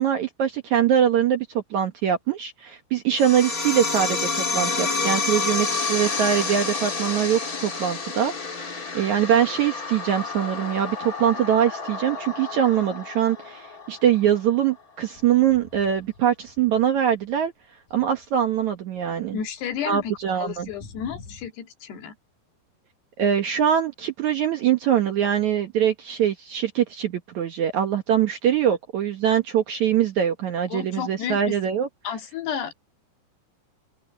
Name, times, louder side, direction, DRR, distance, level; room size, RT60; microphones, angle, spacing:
voice 1, 0.0-17.5 17.9-19.4 19.9-20.7 23.2-31.9, right 9 dB, 65° right, 2.0 m, -23 dB
sound 1, 3.1-14.2, left 4 dB, 30° left, 2.0 m, -29 dB
sound 2, 15.1-17.5 17.7-21.5, left 4 dB, 45° left, 7.6 m, -49 dB
voice 2, 19.3-22.2 30.7-31.5 32.0-32.8, left 8 dB, 75° left, 4.5 m, -32 dB
omnidirectional pair, 4.8 m